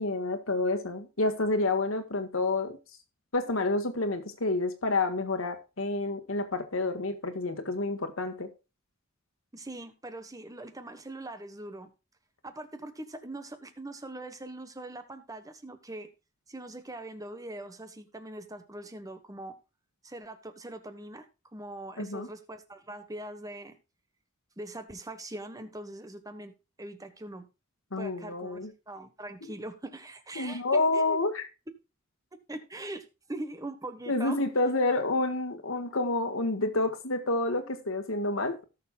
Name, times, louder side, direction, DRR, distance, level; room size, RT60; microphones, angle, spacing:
voice 1, 0.0-2.8 3.3-8.5 22.0-22.3 27.9-28.7 29.4-29.5 30.4-31.5 34.1-38.6, left 2 dB, 75° left, 1.7 m, -29 dB
voice 2, 9.5-11.9 12.4-16.1 16.5-19.5 20.0-21.3 21.5-23.7 24.6-27.5 28.0-31.2 32.5-34.4, right 1 dB, 15° right, 1.2 m, -42 dB
17.5 x 6.7 x 2.3 m
head